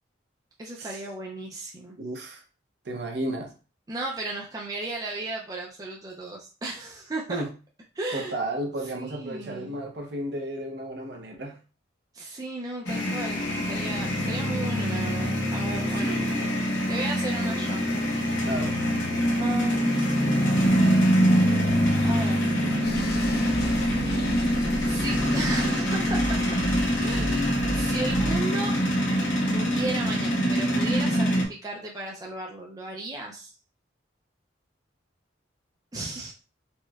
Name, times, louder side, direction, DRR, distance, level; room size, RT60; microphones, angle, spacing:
voice 1, 0.6-2.0 3.9-7.4 8.0-8.3 9.0-9.8 12.1-16.2 16.9-17.8 18.2-18.5 19.4-20.5 22.0-22.4 24.9-26.4 27.0-28.8 29.4-33.5 35.9-36.3, right 2 dB, 20° right, 0.3 m, -35 dB
voice 2, 2.0-2.4 2.8-3.5 7.3-7.5 8.1-11.6 15.9-16.6 18.5-18.8, right 1 dB, 60° right, 0.7 m, -33 dB
sound 1, 12.9-31.4, equal, 75° left, 0.7 m, -24 dB
sound 2, 22.8-28.4, left 1 dB, 50° left, 0.4 m, -32 dB
4.3 x 2.1 x 2.3 m
head